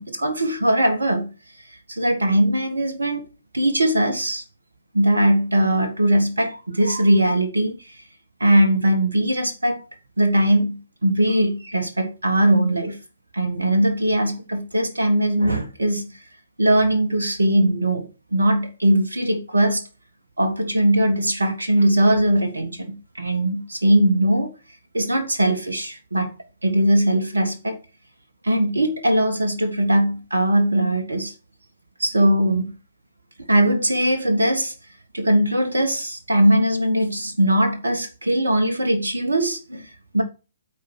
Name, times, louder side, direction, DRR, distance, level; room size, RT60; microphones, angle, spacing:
voice 1, 0.0-1.3 1.9-3.3 3.5-4.4 4.9-8.0 8.4-9.8 10.2-13.0 13.3-16.1 16.6-19.8 20.4-24.5 24.9-26.3 26.6-27.8 28.4-31.3 32.0-32.7 33.5-34.7 35.1-40.2, right 1 dB, 75° right, 1.6 m, -20 dB
8.3 x 4.6 x 6.3 m
figure-of-eight pair, 125°, 0 cm